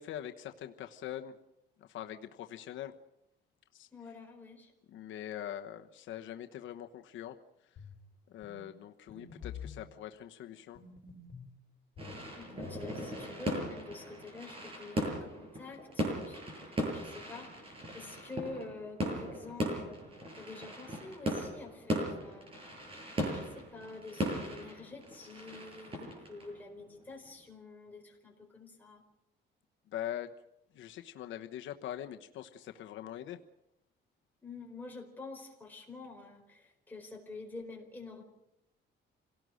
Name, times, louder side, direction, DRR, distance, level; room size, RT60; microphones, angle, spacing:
voice 1, 0.0-1.4 1.8-2.9 3.7-3.9 4.9-7.4 8.3-10.8 29.9-30.3 30.7-33.4, left 11 dB, 75° left, 6 dB, 1.1 m, -43 dB
voice 2, 3.9-4.7 9.1-9.5 12.4-20.1 20.4-22.5 23.3-29.0 34.4-38.2, left 3 dB, 10° left, 0 dB, 4.4 m, -48 dB
sound 1, 7.8-8.0 8.4-8.6 9.1-9.8 10.8-11.5 12.0-12.9, left 7 dB, 50° left, 5.0 m, -47 dB
sound 2, 12.0-27.3, equal, 30° right, 7.8 m, -38 dB
27.0 x 18.0 x 6.4 m, 0.84 s
cardioid pair, 175°, 20 cm